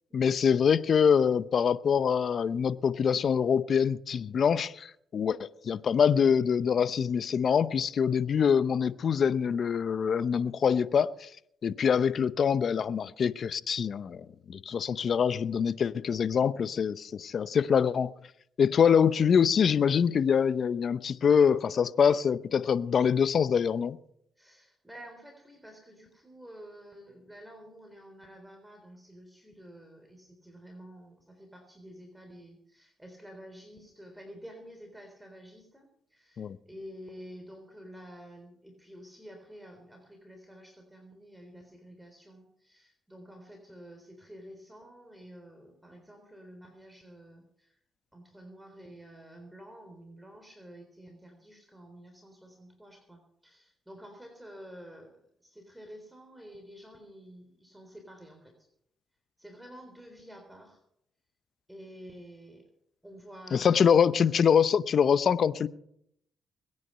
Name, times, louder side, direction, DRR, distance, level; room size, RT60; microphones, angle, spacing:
voice 1, 0.1-11.3 11.6-18.1 18.6-24.0 36.4-36.6 63.5-65.7, left 7 dB, 55° left, 0.7 m, -25 dB
voice 2, 24.4-47.8 48.1-55.1 55.4-58.7 59.4-60.8 61.7-62.7 63.0-64.3, equal, 5° right, 3.7 m, -50 dB
22.0 x 9.8 x 5.6 m
supercardioid pair, 65°, 0 cm